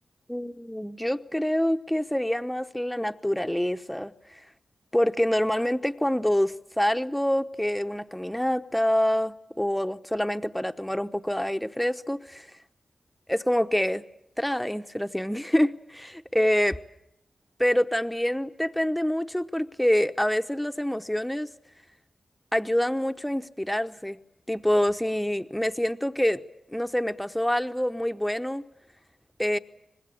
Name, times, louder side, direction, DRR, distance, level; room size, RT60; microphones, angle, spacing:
voice 1, 0.3-4.4 4.9-12.5 13.3-14.0 14.4-16.8 17.6-21.5 22.5-24.2 24.5-26.4 26.7-28.7 29.4-29.6, equal, 5° left, 10 dB, 1.0 m, -26 dB
24.5 x 20.5 x 8.5 m, 0.79 s
wide cardioid pair, 80°, 0 cm